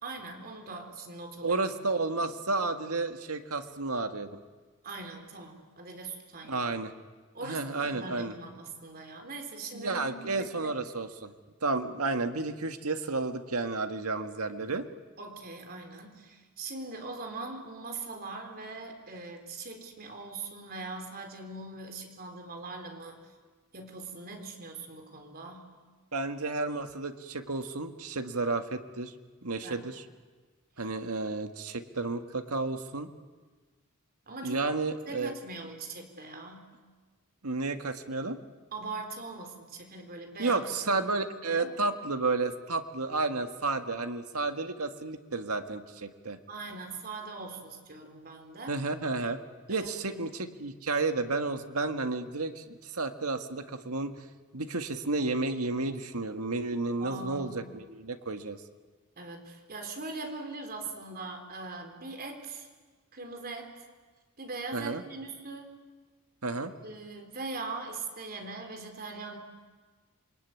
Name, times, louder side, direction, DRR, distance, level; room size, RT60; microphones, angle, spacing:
voice 1, 0.0-1.6 2.1-2.2 4.8-6.6 7.3-10.7 15.2-23.2 23.7-25.7 29.6-29.8 30.8-30.9 34.3-34.7 35.1-36.7 38.7-41.0 41.5-41.7 46.5-48.8 49.7-50.2 57.0-57.7 59.2-62.7 63.1-63.7 64.4-65.7 66.8-69.4, right 3 dB, 45° right, 5 dB, 4.0 m, -41 dB
voice 2, 1.4-4.3 6.4-6.9 7.4-8.3 9.7-11.3 11.6-14.9 26.1-29.1 29.4-30.0 30.8-33.1 34.4-35.3 37.4-38.4 40.4-46.4 48.7-49.4 49.7-54.3 54.5-58.6 64.7-65.0 66.4-66.7, right 3 dB, 90° right, 7 dB, 1.7 m, -32 dB
27.5 x 23.0 x 9.5 m, 1.4 s
head